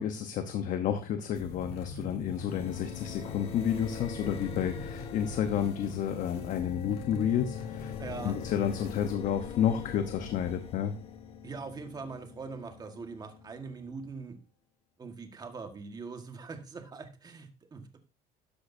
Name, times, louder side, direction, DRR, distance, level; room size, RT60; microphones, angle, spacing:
voice 1, 0.0-7.9 8.2-10.9, left 9 dB, 55° left, 7 dB, 1.0 m, -30 dB
sound 1, 1.3-9.1, left 5 dB, 85° left, 2.5 m, -43 dB
sound 2, 2.5-14.1, left 6 dB, 40° left, 1.2 m, -43 dB
voice 2, 8.0-8.4 11.4-14.4 15.0-18.0, right 4 dB, 25° right, 6 dB, 1.6 m, -42 dB
13.0 x 8.3 x 2.7 m, 0.30 s
cardioid pair, 135°, 16 cm